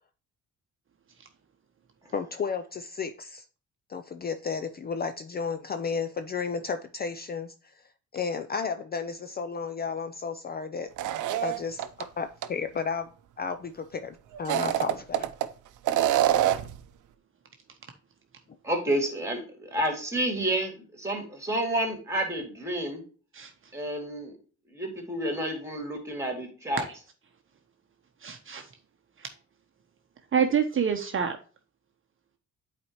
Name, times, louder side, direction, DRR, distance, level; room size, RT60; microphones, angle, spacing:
voice 1, 2.1-3.5 3.9-10.9 11.4-11.9 12.2-13.1 13.4-15.3, left 5 dB, 30° left, 9 dB, 0.5 m, -33 dB
sound 1, 11.0-12.0 12.4-12.5 14.3-15.5 15.9-16.8, right 12 dB, 80° right, 0.6 m, -25 dB
voice 2, 18.6-23.0 23.7-24.3 24.7-26.8, right 1 dB, 10° right, 3 dB, 2.6 m, -30 dB
voice 3, 28.2-28.7 29.2-29.3 30.3-31.4, right 7 dB, 45° right, 5 dB, 0.8 m, -27 dB
8.5 x 4.2 x 3.0 m, 0.38 s
cardioid pair, 90°, 30 cm